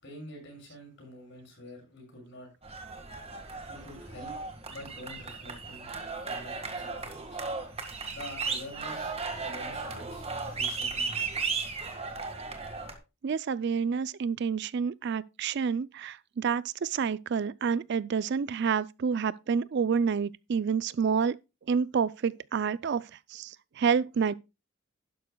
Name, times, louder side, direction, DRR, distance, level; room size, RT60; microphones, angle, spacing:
voice 1, 0.0-2.5 3.7-4.4 4.7-5.9 6.2-7.4 7.8-9.1 9.4-10.2 10.5-11.7, left 1 dB, 60° left, 6.5 m, -46 dB
sound 1, 2.6-13.0, right 4 dB, 30° right, 1.7 m, -36 dB
voice 2, 13.2-21.4 21.7-24.3, right 6 dB, 55° right, 0.4 m, -29 dB
12.0 x 11.0 x 2.3 m
head